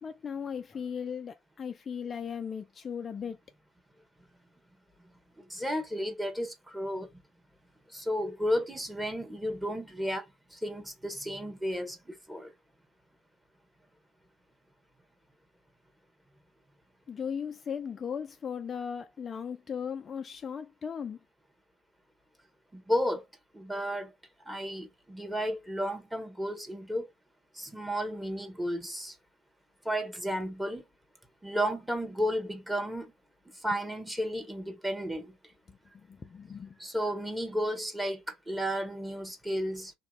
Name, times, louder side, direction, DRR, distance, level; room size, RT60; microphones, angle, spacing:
voice 1, 0.0-3.4 17.1-21.2 33.7-33.8 35.7-35.8 36.1-36.8, left 7 dB, 30° left, 0.3 m, -37 dB
voice 2, 5.4-7.1 7.9-12.5 22.7-23.2 23.5-24.1 24.5-27.1 27.5-29.1 29.8-30.8 31.4-33.1 33.6-35.3 36.8-39.9, equal, 5° right, 1.1 m, -33 dB
2.9 x 2.7 x 2.4 m
hypercardioid pair, 75°, 0 cm